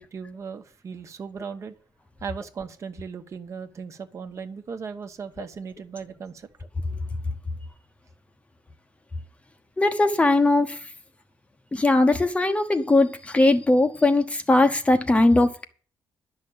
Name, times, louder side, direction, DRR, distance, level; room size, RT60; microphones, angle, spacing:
voice 1, 0.0-1.7 2.2-6.5, right 6 dB, 40° right, 1.3 m, -37 dB
voice 2, 9.8-10.8 11.7-15.6, left 2 dB, 15° left, 1.0 m, -20 dB
11.5 x 6.2 x 8.7 m
cardioid pair, 150°, 7 cm